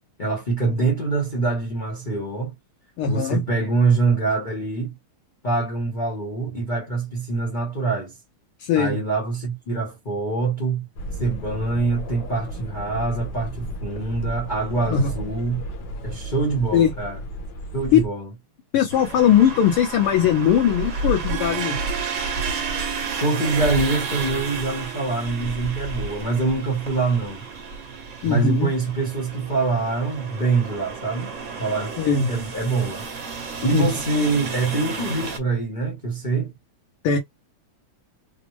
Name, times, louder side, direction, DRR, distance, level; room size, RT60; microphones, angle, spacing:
voice 1, 0.2-2.5 3.1-4.9 5.4-8.1 8.7-10.8 11.2-15.6 16.0-17.2 17.7-18.3 23.2-27.5 28.2-31.3 31.6-31.9 32.3-33.0 33.6-36.5, right 3 dB, 35° left, 0.8 m, -24 dB
voice 2, 3.0-3.4 8.6-9.0 14.9-15.1 16.7-16.9 17.9-18.0 18.7-21.8 28.2-28.7 32.0-32.3 33.7-33.9 37.0-37.2, left 8 dB, 80° left, 1.8 m, -19 dB
sound 1, 11.0-18.1, right 1 dB, 65° left, 1.5 m, -34 dB
sound 2, 18.9-35.4, right 3 dB, 45° right, 1.2 m, -32 dB
Harp, 21.0-28.7, right 12 dB, 80° right, 1.4 m, -35 dB
4.0 x 2.1 x 3.1 m
omnidirectional pair, 2.4 m